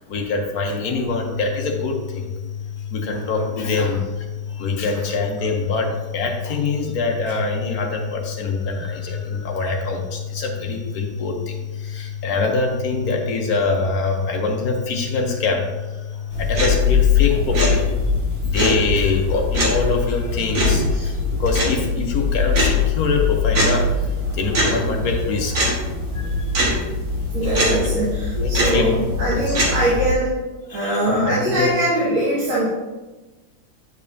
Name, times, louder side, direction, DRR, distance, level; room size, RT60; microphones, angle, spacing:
voice 1, 0.1-2.3 2.9-4.2 4.5-15.7 16.3-17.8 18.4-24.1 24.3-26.6 27.4-27.8 28.4-28.9 29.2-29.6 30.7-31.7, left 3 dB, 55° left, 2 dB, 1.2 m, -24 dB
sound 1, 1.1-16.8, left 8 dB, 80° left, 1.4 m, -32 dB
sound 2, 16.3-30.1, left 3 dB, 50° right, 2.1 m, -21 dB
voice 2, 27.3-30.3 30.7-32.7, right 1 dB, 80° right, -9 dB, 2.5 m, -22 dB
9.3 x 5.3 x 2.7 m, 1.2 s
omnidirectional pair, 2.2 m